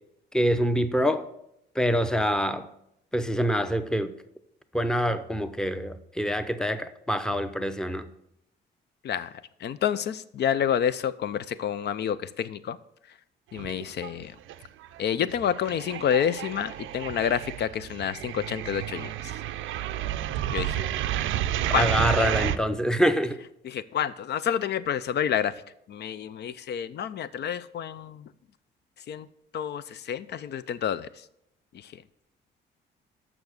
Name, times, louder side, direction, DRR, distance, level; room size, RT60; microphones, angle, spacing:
voice 1, 0.3-1.3 1.8-2.7 3.1-4.1 4.7-8.0 21.7-23.4, equal, 5° left, 10 dB, 0.7 m, -25 dB
voice 2, 9.6-12.8 13.5-14.3 15.0-19.1 20.5-20.8 21.7-21.9 23.6-25.5 25.9-28.3 29.1-29.3 29.5-31.1, left 9 dB, 60° left, 15 dB, 0.5 m, -28 dB
sound 1, 13.5-14.2 14.5-22.6, right 12 dB, 85° right, 0.5 m, -31 dB
7.0 x 6.0 x 6.5 m, 0.79 s
cardioid pair, 90°, 20 cm